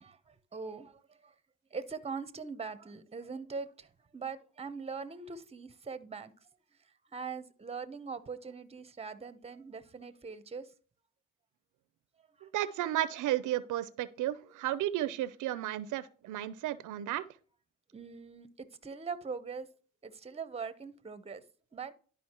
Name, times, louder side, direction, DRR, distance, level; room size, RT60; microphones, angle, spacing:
voice 1, 0.0-1.3 1.7-6.3 7.1-10.7 12.4-12.5 17.9-19.7 20.0-21.4 21.7-21.9, right 5 dB, 20° right, 13 dB, 0.8 m, -42 dB
voice 2, 12.4-17.2, right 13 dB, 80° right, 17 dB, 0.6 m, -33 dB
11.5 x 5.1 x 2.9 m, 0.42 s
cardioid pair, 90°, 30 cm